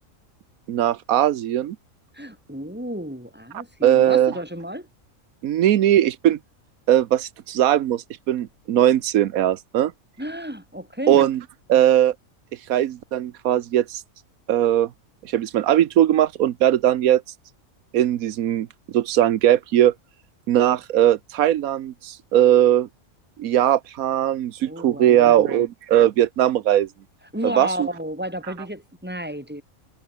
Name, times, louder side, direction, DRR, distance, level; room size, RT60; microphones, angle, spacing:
voice 1, 0.7-1.8 3.8-4.3 5.4-6.4 6.9-9.9 11.1-11.4 11.7-12.1 12.7-14.0 14.5-14.9 15.2-17.2 17.9-18.7 18.9-19.9 20.5-22.9 23.4-26.9 27.4-27.9, right 11 dB, 90° right, 1.2 m, -19 dB
voice 2, 2.1-4.9 10.2-11.3 24.6-25.6 27.3-29.6, equal, 5° right, 6.2 m, -32 dB
omnidirectional pair, 1.4 m